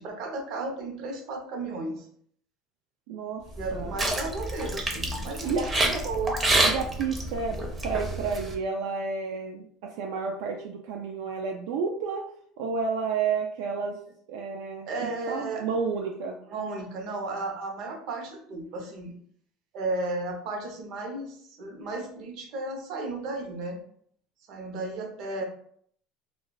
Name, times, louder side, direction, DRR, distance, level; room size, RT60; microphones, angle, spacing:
voice 1, 0.0-2.1 3.6-6.5 14.9-15.7 16.5-19.2 19.7-23.8 24.5-25.4, right 2 dB, 60° right, 3 dB, 0.7 m, -34 dB
voice 2, 3.1-3.4 3.7-4.0 5.4-5.7 6.6-12.2 12.6-14.0 14.3-16.4, right 5 dB, 80° right, 1 dB, 0.4 m, -31 dB
sound 1, 3.5-8.5, right 1 dB, 15° right, 0.5 m, -28 dB
2.3 x 2.3 x 3.8 m, 0.62 s
cardioid pair, 130°, 0 cm